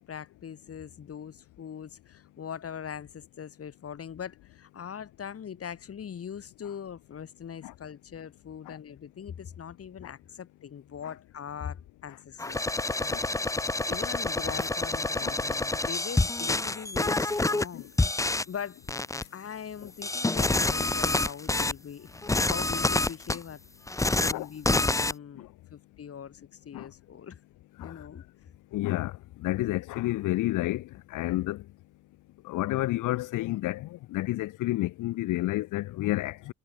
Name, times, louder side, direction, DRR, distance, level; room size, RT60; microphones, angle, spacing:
voice 1, 0.0-13.2 13.9-17.9 18.5-18.8 19.3-22.1 22.4-23.6 24.1-27.4 27.8-28.2, left 8 dB, 50° left, 3.3 m, -41 dB
sound 1, 12.4-17.7 18.0-18.4 18.9-19.2 20.0-21.7 22.1-23.4 23.9-24.3 24.6-25.1, left 2 dB, 10° left, 0.8 m, -27 dB
voice 2, 28.7-31.6 32.4-36.5, left 17 dB, 90° left, 1.2 m, -30 dB
cardioid pair, 90°, 30 cm